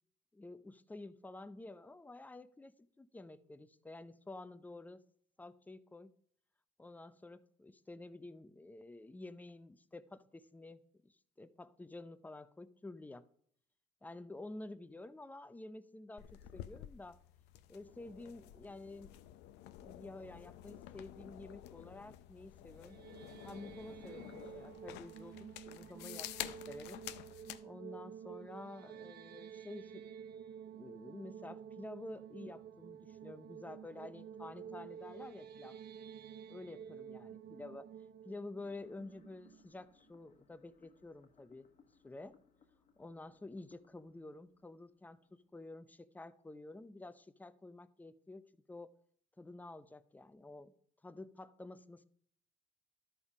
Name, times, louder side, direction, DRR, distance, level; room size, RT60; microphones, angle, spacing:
voice 1, 0.3-5.0 5.4-6.1 6.8-13.3 14.0-17.2 17.7-19.2 19.8-23.0 23.4-27.0 27.6-30.0 30.7-35.8 36.5-37.9 38.2-41.7 42.0-42.4 43.0-48.9 49.4-50.7 51.0-52.0, left 2 dB, 10° left, 14 dB, 0.5 m, -50 dB
sound 1, 16.2-27.6, left 13 dB, 90° left, 0.6 m, -50 dB
sound 2, 22.7-39.8, right 8 dB, 65° right, 0.6 m, -51 dB
sound 3, 38.6-45.7, left 5 dB, 45° left, 1.1 m, -69 dB
12.5 x 5.4 x 4.9 m, 0.64 s
cardioid pair, 110°, 17 cm